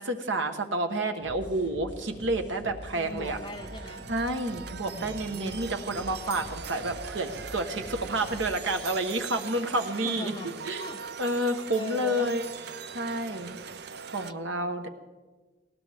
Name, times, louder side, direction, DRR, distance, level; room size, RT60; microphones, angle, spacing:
voice 1, 0.0-3.4 4.1-10.3 10.6-10.8 11.2-12.5 12.9-13.6 14.1-14.9, right 1 dB, 80° right, 6 dB, 1.2 m, -29 dB
sound 1, 1.2-8.7, equal, 40° right, 6.1 m, -45 dB
sound 2, 2.8-14.3, right 6 dB, 60° right, 0.5 m, -41 dB
voice 2, 2.9-4.0 4.8-5.6 9.9-11.3 11.8-12.4, left 1 dB, 25° left, 5 dB, 0.9 m, -40 dB
19.5 x 17.5 x 3.5 m, 1.3 s
head